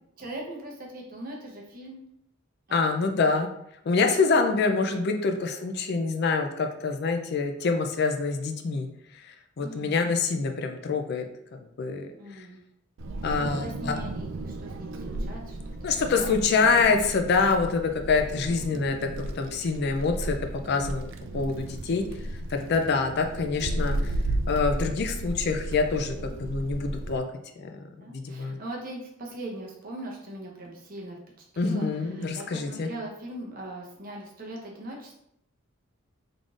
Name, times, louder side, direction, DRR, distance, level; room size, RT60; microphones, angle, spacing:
voice 1, 0.2-2.0 2.7-3.0 9.6-10.0 12.2-12.6 13.3-16.4 20.6-21.0 24.0-24.3 26.2-26.3 28.0-35.1, right 1 dB, 40° right, -1 dB, 0.8 m, -41 dB
voice 2, 2.7-3.5 3.9-8.9 9.1-9.2 9.6-11.3 11.6-12.5 13.2-13.9 15.8-20.4 20.6-21.0 21.3-22.0 22.5-24.1 24.5-27.2 27.6-27.8 28.1-28.6 31.6-32.9, left 4 dB, 50° left, 5 dB, 0.4 m, -26 dB
Wind, 13.0-27.2, right 1 dB, 60° right, 0.3 m, -34 dB
3.7 x 3.6 x 2.4 m, 0.74 s
head